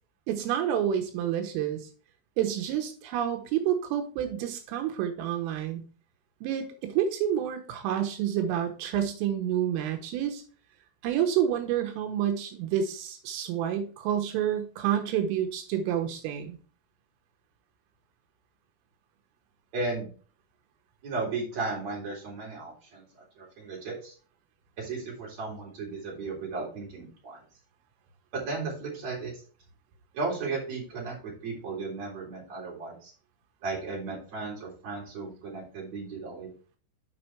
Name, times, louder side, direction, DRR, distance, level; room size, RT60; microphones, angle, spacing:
voice 1, 0.3-1.9 2.4-5.8 6.4-10.4 11.0-16.6, right 10 dB, 80° right, 5 dB, 3.6 m, -29 dB
voice 2, 19.7-20.1 21.0-23.0 23.4-24.1 24.8-27.4 28.3-29.4 30.1-33.1 33.6-36.5, right 3 dB, 35° right, -4 dB, 4.1 m, -35 dB
7.6 x 5.3 x 4.4 m, 0.38 s
omnidirectional pair, 5.8 m